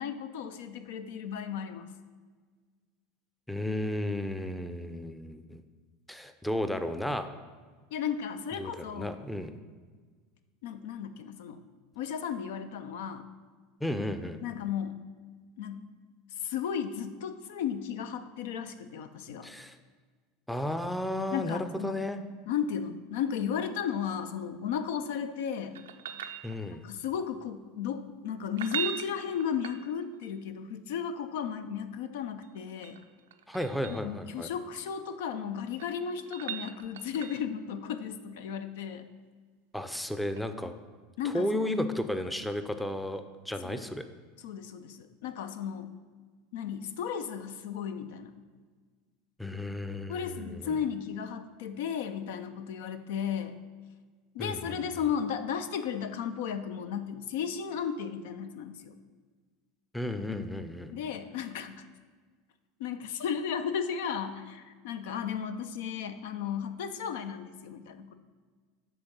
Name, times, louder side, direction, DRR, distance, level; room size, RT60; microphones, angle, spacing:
voice 1, 0.0-1.9 7.9-9.2 10.6-11.6 12.0-13.3 14.4-15.0 15.6-15.8 16.4-19.5 21.3-21.9 22.5-25.7 26.8-33.0 33.9-39.1 41.2-41.6 43.6-43.8 44.4-45.9 46.5-48.3 50.1-53.6 54.3-59.0 60.9-61.8 62.8-68.1, left 7 dB, 70° left, 10 dB, 0.4 m, -34 dB
voice 2, 3.5-5.6 6.1-7.3 8.6-9.5 13.8-14.4 19.4-19.8 20.5-22.2 26.4-26.9 33.5-34.5 39.7-40.7 41.2-44.1 49.4-50.8 54.4-55.0 59.9-60.9, left 1 dB, 5° left, 8 dB, 0.5 m, -33 dB
sound 1, 25.7-27.0 28.4-30.3 32.4-34.1 35.5-37.6 40.3-40.4, right 10 dB, 80° right, 0.4 m, -40 dB
6.2 x 3.8 x 6.1 m, 1.5 s
hypercardioid pair, 85°, 0 cm